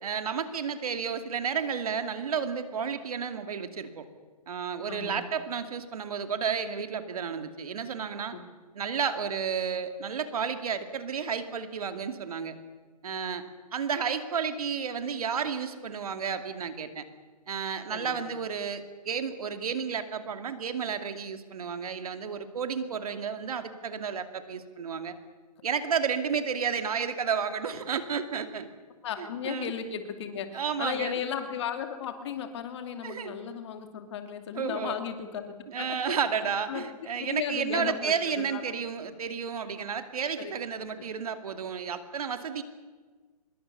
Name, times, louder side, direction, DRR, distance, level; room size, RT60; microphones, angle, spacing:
voice 1, 0.0-4.0 4.5-8.4 8.7-12.5 13.0-13.4 13.7-17.0 17.5-25.1 25.6-28.7 29.2-29.7 30.5-31.2 33.0-33.3 34.5-35.0 35.7-42.6, right 6 dB, 65° right, 8 dB, 2.6 m, -32 dB
voice 2, 4.9-5.2 17.9-18.2 29.0-36.2 36.7-36.8 37.2-38.6 40.4-40.5, left 8 dB, 45° left, 7 dB, 2.6 m, -35 dB
25.0 x 22.0 x 6.9 m, 1.4 s
hypercardioid pair, 150°, 20 cm